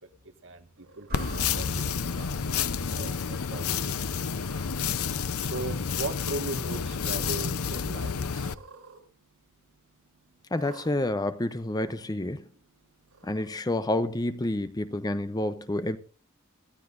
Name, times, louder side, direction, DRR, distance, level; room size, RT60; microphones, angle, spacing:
Cat, 0.8-1.4 2.1-2.5 2.9-3.0 4.1-4.8 5.8-6.5 6.7-7.3 8.4-9.0 9.3-9.4 10.5-10.9 11.8-11.9 13.0-13.6, right 4 dB, 75° right, 4.0 m, -53 dB
voice 1, 1.0-1.9 2.2-2.7 2.9-3.9 5.4-8.5, right 3 dB, 60° right, 1.7 m, -38 dB
sound 1, 1.1-8.5, left 6 dB, 75° left, 0.7 m, -30 dB
sound 2, 1.1-5.3, equal, 45° right, 2.6 m, -43 dB
voice 2, 10.5-12.4 13.2-16.0, left 1 dB, 15° left, 0.6 m, -29 dB
23.0 x 14.0 x 2.6 m
head